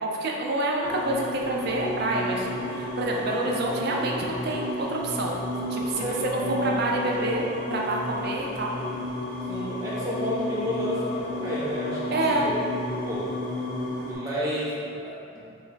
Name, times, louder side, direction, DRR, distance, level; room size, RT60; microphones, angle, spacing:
voice 1, 0.0-5.4 5.7-6.3 6.6-8.7 12.1-12.5, right 2 dB, 45° right, -1 dB, 0.5 m, -28 dB
sound 1, 0.8-14.2, left 1 dB, 55° left, 1.2 m, -32 dB
voice 2, 3.0-3.3 5.9-6.7 9.5-12.6 13.0-13.2 14.0-15.4, equal, 15° right, -9 dB, 0.9 m, -31 dB
3.4 x 3.1 x 3.9 m, 2.5 s
head